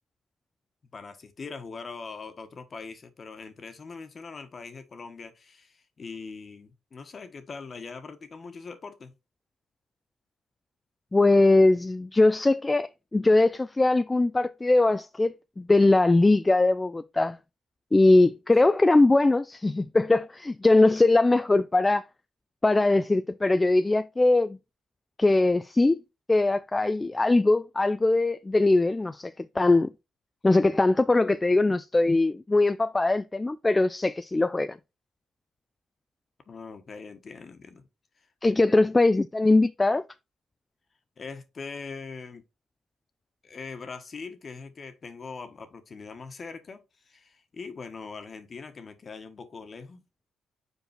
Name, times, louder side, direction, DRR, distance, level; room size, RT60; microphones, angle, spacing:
voice 1, 0.9-9.1 36.5-37.9 38.2-38.3 38.7-38.8 41.2-42.4 43.4-50.0, left 4 dB, 40° left, 1.3 m, -42 dB
voice 2, 11.1-17.4 17.9-22.0 22.6-24.6 25.2-26.0 26.3-29.9 30.4-34.8 38.4-40.0, left 2 dB, 20° left, 0.3 m, -21 dB
5.5 x 4.6 x 4.4 m
cardioid pair, 90°, 0 cm